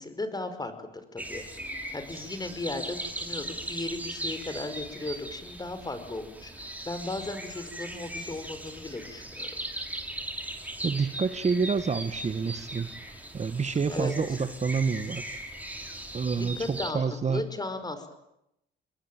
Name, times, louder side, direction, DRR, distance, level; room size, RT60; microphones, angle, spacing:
voice 1, 0.0-1.5 1.9-9.5 13.9-14.4 16.4-18.1, left 2 dB, 20° left, 10 dB, 5.3 m, -36 dB
sound 1, 1.2-16.9, right 1 dB, 10° right, 5.9 m, -39 dB
voice 2, 10.8-15.2 16.1-17.4, right 5 dB, 35° right, 11 dB, 1.6 m, -28 dB
27.0 x 22.0 x 9.1 m, 0.81 s
cardioid pair, 90°, 20 cm